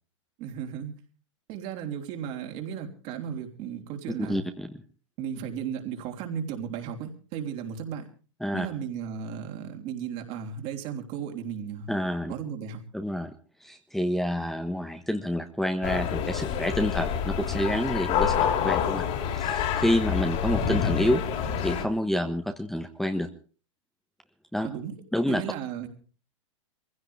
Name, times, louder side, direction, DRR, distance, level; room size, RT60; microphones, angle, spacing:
voice 1, 0.4-0.9 1.5-4.4 5.2-8.1 8.5-11.9 12.3-12.8 24.6-25.0 25.3-25.9, right 8 dB, 45° right, 3 dB, 3.5 m, -35 dB
voice 2, 4.2-4.7 8.4-8.7 11.9-12.3 12.9-13.3 13.6-21.2 21.6-23.3 24.5-24.7 25.1-25.4, equal, ahead, 4 dB, 1.2 m, -28 dB
sound 1, 15.8-21.8, left 8 dB, 40° left, 3.2 m, -27 dB
23.5 x 16.0 x 3.5 m, 0.38 s
hypercardioid pair, 110°, 16 cm